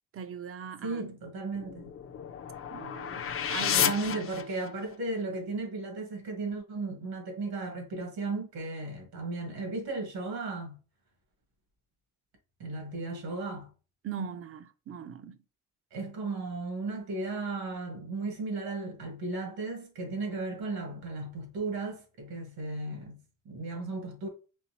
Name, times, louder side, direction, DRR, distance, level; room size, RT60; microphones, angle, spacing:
voice 1, 0.1-1.0 2.7-3.9 14.0-15.4, right 7 dB, 40° right, 0.4 m, -40 dB
voice 2, 0.8-1.9 3.8-10.8 12.6-13.7 15.9-24.3, right 3 dB, 80° right, 1.9 m, -35 dB
sound 1, 1.5-5.0, left 8 dB, 40° left, 0.4 m, -32 dB
4.3 x 3.3 x 2.9 m
cardioid pair, 110°, 37 cm